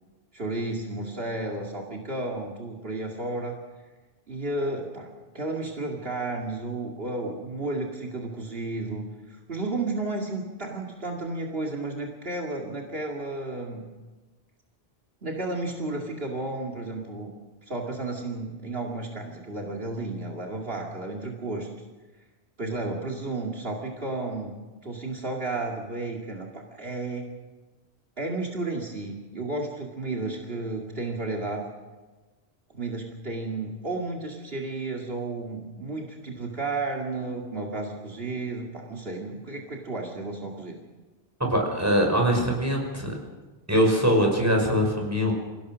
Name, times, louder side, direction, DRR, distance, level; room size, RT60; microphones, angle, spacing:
voice 1, 0.3-3.6 4.3-5.1 5.3-13.8 15.2-17.3 17.7-21.7 22.6-24.5 24.8-27.3 28.2-31.7 32.7-40.8, right 2 dB, 65° right, -1 dB, 2.6 m, -32 dB
voice 2, 41.4-43.1 43.7-45.3, equal, 15° right, 1 dB, 5.8 m, -22 dB
27.5 x 17.0 x 6.3 m, 1.2 s
omnidirectional pair, 1.1 m